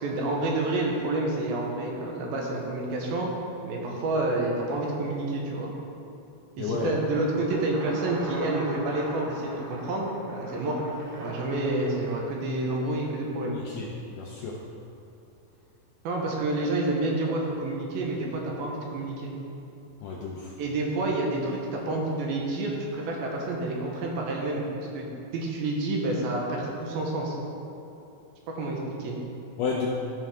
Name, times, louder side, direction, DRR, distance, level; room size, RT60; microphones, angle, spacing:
voice 1, 0.0-3.3 3.6-5.7 6.6-10.8 11.2-13.6 16.0-19.3 20.6-24.6 24.9-25.1 25.3-27.4 28.5-29.2, right 2 dB, 80° right, -1 dB, 2.7 m, -29 dB
voice 2, 6.6-6.9 13.5-13.9 14.1-14.6 20.0-20.5 29.6-29.9, left 5 dB, 80° left, -3 dB, 1.9 m, -31 dB
sound 1, 6.7-12.5, equal, 60° right, 3.2 m, -40 dB
13.0 x 4.6 x 3.5 m, 2.7 s
omnidirectional pair, 4.4 m